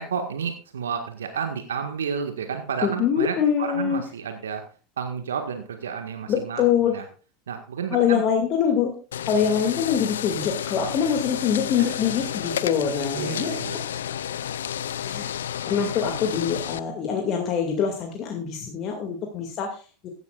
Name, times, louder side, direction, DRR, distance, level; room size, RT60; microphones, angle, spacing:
voice 1, 0.0-4.6 5.0-7.1 7.5-8.2 11.8-11.9 13.1-13.8, right 6 dB, 75° right, 6 dB, 1.7 m, -31 dB
voice 2, 2.8-4.0 6.3-6.9 7.9-9.0 9.3-13.5 15.0-15.3 15.7-20.1, left 7 dB, 40° left, 2 dB, 2.3 m, -24 dB
sound 1, 9.1-16.8, left 9 dB, 75° left, 0.5 m, -31 dB
15.5 x 12.0 x 2.5 m, 0.37 s
figure-of-eight pair, 85°, 0 cm